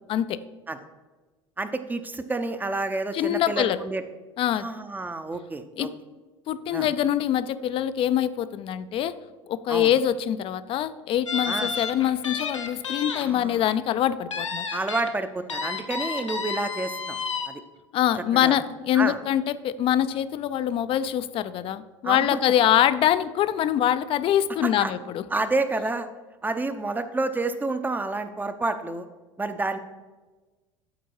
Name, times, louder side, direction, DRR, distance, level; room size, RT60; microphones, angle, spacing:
voice 1, 1.6-4.0 4.5-5.9 6.7-6.9 9.7-9.9 11.5-11.7 13.2-13.6 14.7-17.2 17.5-17.6 18.3-18.6 18.9-19.2 22.0-22.4 24.6-24.9 25.3-26.1 26.4-29.1 29.4-29.8, right 2 dB, 10° right, 10 dB, 0.6 m, -29 dB
voice 2, 3.1-3.8 4.4-4.7 5.8-5.9 6.5-9.1 9.5-14.7 17.9-25.2, left 11 dB, 35° left, 14 dB, 0.4 m, -24 dB
sound 1, 11.3-13.2 13.6-13.7 14.3-15.1 15.5-17.5, left 5 dB, 80° left, 0.8 m, -31 dB
12.0 x 4.5 x 4.6 m, 1.3 s
figure-of-eight pair, 70°, 16 cm